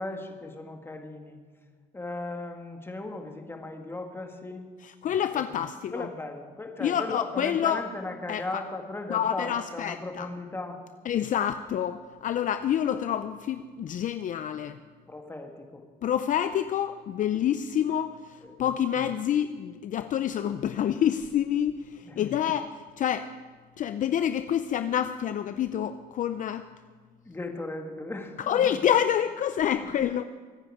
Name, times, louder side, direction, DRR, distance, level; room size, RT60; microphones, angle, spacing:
voice 1, 0.0-1.4 1.9-4.7 5.3-5.4 5.9-10.8 15.1-15.8 18.4-18.6 22.0-22.2 27.3-28.8 29.8-29.9, left 2 dB, 15° left, 4 dB, 2.0 m, -37 dB
voice 2, 4.8-6.1 6.8-7.8 8.3-8.6 9.1-10.3 11.0-14.8 16.0-23.3 23.8-26.7 28.4-30.2, left 9 dB, 50° left, 10 dB, 0.6 m, -27 dB
23.5 x 9.8 x 4.9 m, 1.5 s
cardioid pair, 110°, 17 cm